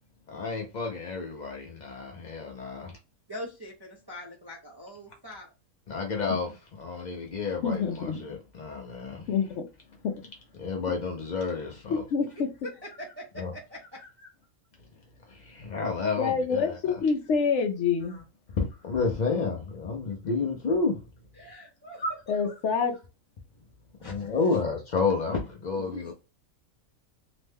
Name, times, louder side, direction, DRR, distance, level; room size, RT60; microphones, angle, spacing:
voice 1, 0.3-3.0 5.9-9.3 10.6-12.0 13.4-13.5 15.3-17.0 18.5-21.0 22.0-22.1 24.1-26.1, left 4 dB, 85° left, 0.4 m, -30 dB
voice 2, 3.3-5.5 12.6-14.3 21.4-22.0 22.4-22.5 24.0-24.6 25.7-26.1, equal, 30° right, 0.4 m, -43 dB
voice 3, 7.6-8.2 9.3-9.6 10.0-10.1 11.9-12.5 16.2-18.2 22.3-22.9, left 5 dB, 65° left, 0.8 m, -26 dB
3.0 x 2.1 x 3.2 m
omnidirectional pair, 1.5 m